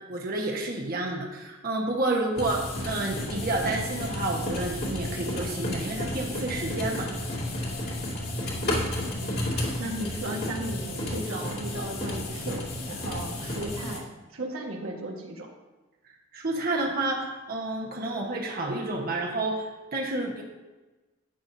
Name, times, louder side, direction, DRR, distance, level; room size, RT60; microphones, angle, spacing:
voice 1, 0.1-7.1 16.3-20.4, right 2 dB, 45° right, 0 dB, 1.2 m, -30 dB
sound 1, 2.4-14.0, left 1 dB, 50° left, 2.4 m, -32 dB
voice 2, 9.1-14.1 14.3-15.5, right 1 dB, 90° right, 0 dB, 1.5 m, -36 dB
12.5 x 8.8 x 2.7 m, 1.2 s
head